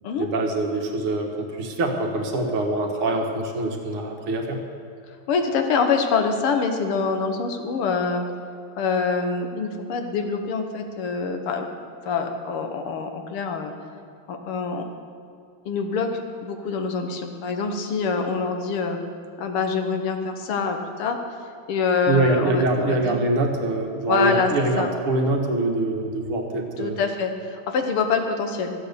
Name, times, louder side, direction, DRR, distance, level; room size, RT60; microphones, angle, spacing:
voice 1, 0.2-4.6 22.1-27.0, right 2 dB, 75° right, 2 dB, 2.3 m, -24 dB
voice 2, 5.3-8.3 8.8-11.7 12.1-13.7 14.3-14.8 15.7-16.1 16.4-19.0 19.4-21.2 21.7-23.2 24.1-24.5 24.8-24.9 26.8-28.7, left 5 dB, 85° left, 5 dB, 2.0 m, -25 dB
14.0 x 8.6 x 6.8 m, 2.4 s
omnidirectional pair, 2.4 m